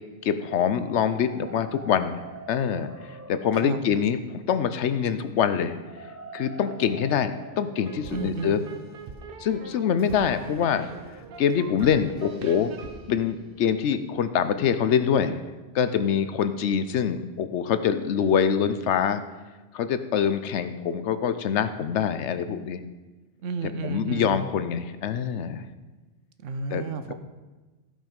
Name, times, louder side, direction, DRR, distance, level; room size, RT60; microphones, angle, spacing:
voice 1, 0.2-2.2 2.5-5.8 6.3-8.6 9.4-10.9 11.4-12.7 13.1-15.4 15.7-19.2 19.7-22.8 23.8-25.6 26.7-26.8, left 8 dB, 70° left, 11 dB, 0.9 m, -25 dB
sound 1, 1.1-10.8, right 3 dB, 20° right, 0.4 m, -46 dB
sound 2, 7.8-14.2, right 5 dB, 50° right, 0.9 m, -42 dB
voice 2, 8.1-8.6 23.4-24.4 26.4-27.1, right 4 dB, 85° right, 10 dB, 1.1 m, -32 dB
15.0 x 5.6 x 5.2 m, 1.2 s
omnidirectional pair, 1.3 m